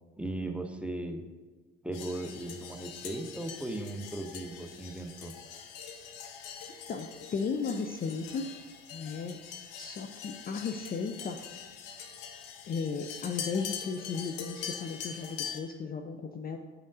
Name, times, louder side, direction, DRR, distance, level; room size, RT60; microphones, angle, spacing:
voice 1, 0.2-1.2 1.8-5.3, right 1 dB, 5° right, 4 dB, 0.7 m, -37 dB
sound 1, 1.9-15.6, left 7 dB, 65° left, 0.8 m, -43 dB
voice 2, 6.9-8.4 8.9-9.4 9.8-11.4 12.7-16.6, left 5 dB, 25° left, 5 dB, 0.5 m, -35 dB
9.7 x 5.2 x 2.5 m, 1.3 s
hypercardioid pair, 60°, 34 cm